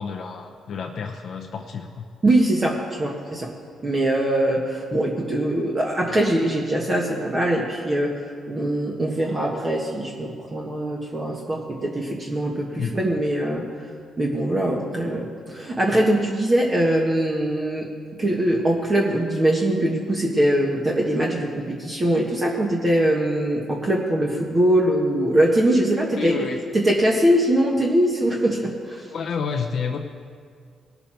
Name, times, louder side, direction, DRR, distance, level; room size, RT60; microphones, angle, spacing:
voice 1, 0.0-2.0 12.8-12.9 26.1-26.6 29.1-30.0, left 6 dB, 60° left, 1 dB, 0.7 m, -29 dB
voice 2, 2.2-3.5 3.8-13.6 14.2-17.9 18.2-26.4 26.7-29.1, right 1 dB, 30° right, -1 dB, 1.4 m, -22 dB
19.5 x 6.8 x 4.5 m, 2.1 s
cardioid pair, 90°, 0 cm